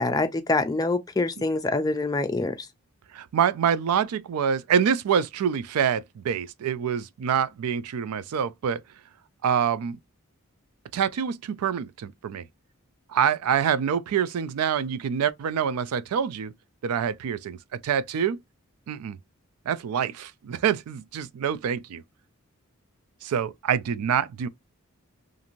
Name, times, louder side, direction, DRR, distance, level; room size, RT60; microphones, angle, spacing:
voice 1, 0.0-2.7, left 2 dB, 15° left, 0.3 m, -25 dB
voice 2, 3.1-8.8 9.4-10.0 10.9-12.4 13.1-16.5 16.8-18.4 18.9-19.2 19.7-22.0 23.2-24.5, right 8 dB, 85° right, 0.3 m, -26 dB
2.5 x 2.5 x 2.9 m
head